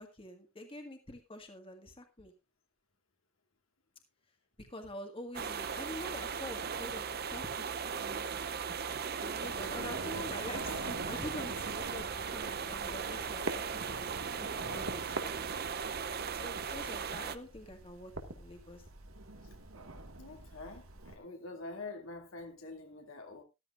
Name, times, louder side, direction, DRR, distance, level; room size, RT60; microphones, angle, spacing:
voice 1, 0.0-2.3 4.6-7.7 8.0-8.4 9.2-15.3 16.4-18.8, left 1 dB, 25° left, 1.7 m, -46 dB
sound 1, 5.3-17.4, right 6 dB, 45° right, 0.6 m, -38 dB
sound 2, 9.4-21.2, right 2 dB, 75° right, 1.8 m, -45 dB
voice 2, 20.2-23.4, left 3 dB, 70° left, 2.6 m, -46 dB
14.0 x 13.5 x 2.5 m
head